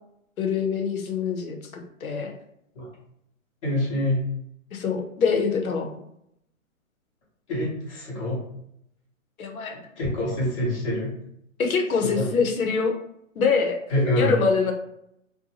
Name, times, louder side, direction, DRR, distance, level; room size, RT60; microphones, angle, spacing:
voice 1, 0.4-2.3 4.7-5.9 9.4-9.8 11.6-12.9 13.4-13.8 14.2-14.7, left 5 dB, 90° left, 4 dB, 0.8 m, -24 dB
voice 2, 3.6-4.3 7.5-8.4 10.0-11.1 12.0-12.3 13.9-14.4, left 1 dB, 25° left, -7 dB, 0.7 m, -25 dB
2.6 x 2.2 x 2.8 m, 0.74 s
hypercardioid pair, 160°, 41 cm